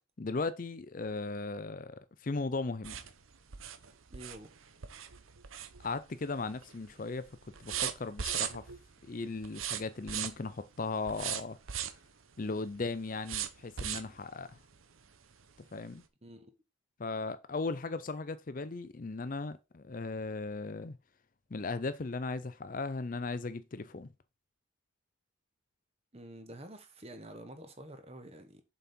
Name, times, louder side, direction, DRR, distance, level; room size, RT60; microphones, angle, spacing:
voice 1, 0.2-3.0 5.8-7.3 7.6-8.6 9.0-11.6 12.4-14.6 15.7-16.0 17.0-21.0 21.5-24.1, left 3 dB, 40° left, 0.5 m, -37 dB
sound 1, 2.8-6.2 6.5-6.9 7.2-8.9 9.4-10.5 11.1-12.1 13.2-14.2 14.7-14.8 15.2-15.3, right 9 dB, 80° right, 0.9 m, -37 dB
voice 2, 4.1-4.5 16.2-16.5 26.1-28.6, right 1 dB, 30° right, 1.2 m, -48 dB
7.1 x 5.3 x 4.3 m
head